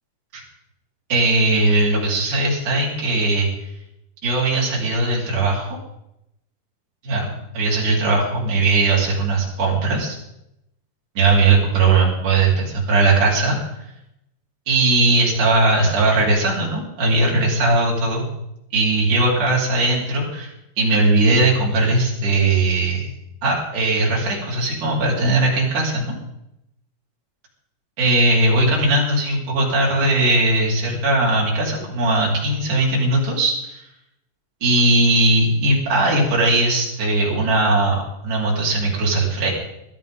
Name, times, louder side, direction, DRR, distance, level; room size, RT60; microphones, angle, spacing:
voice 1, 1.1-3.5 4.2-5.7 7.0-7.3 7.5-10.2 11.2-13.6 14.7-18.2 18.7-23.1 23.4-26.1 28.0-33.8 34.6-39.5, right 2 dB, 45° right, -4 dB, 5.5 m, -19 dB
20.5 x 14.0 x 3.8 m, 0.82 s
omnidirectional pair, 5.0 m